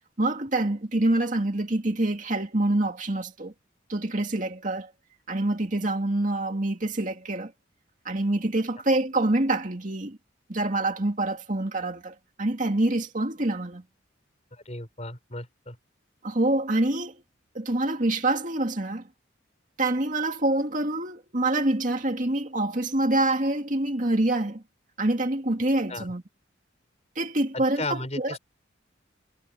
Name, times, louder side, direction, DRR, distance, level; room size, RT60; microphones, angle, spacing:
voice 1, 0.2-3.5 3.9-4.9 5.3-7.5 8.0-10.2 10.5-13.8 16.2-17.2 17.5-19.0 19.8-24.6 25.0-26.2 27.2-28.4, right 2 dB, 40° right, 2.2 m, -26 dB
voice 2, 14.5-15.8 25.9-26.1 27.5-28.4, left 2 dB, 35° left, 5.3 m, -35 dB
head